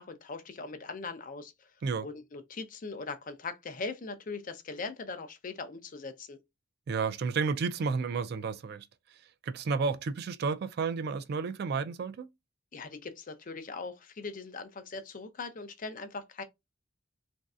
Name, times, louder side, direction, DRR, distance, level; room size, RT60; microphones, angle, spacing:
voice 1, 0.0-1.7 2.0-6.4 12.7-16.4, left 4 dB, 45° left, 0.5 m, -40 dB
voice 2, 6.9-8.9 9.4-12.3, right 5 dB, 55° right, 0.3 m, -31 dB
3.1 x 2.6 x 2.4 m
head